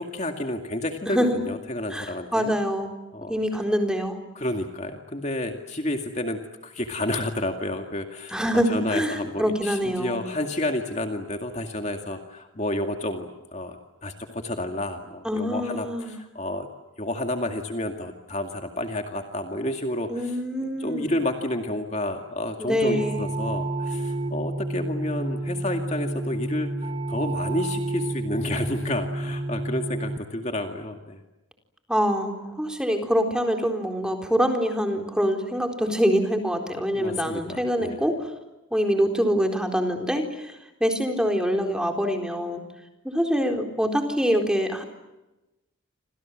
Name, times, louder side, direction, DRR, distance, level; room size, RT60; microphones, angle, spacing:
voice 1, 0.0-2.5 3.1-3.7 4.3-16.7 17.0-31.2 36.9-38.1, left 1 dB, 35° left, 4 dB, 2.3 m, -30 dB
voice 2, 1.9-2.9 3.3-4.2 8.3-10.2 15.2-16.1 20.1-21.1 22.6-23.2 31.9-38.3 38.7-40.6 40.8-42.6 43.0-44.8, equal, 5° right, 4 dB, 4.1 m, -25 dB
sound 1, 22.8-30.2, right 2 dB, 25° right, 1.0 m, -30 dB
29.5 x 27.0 x 7.6 m, 1.0 s
head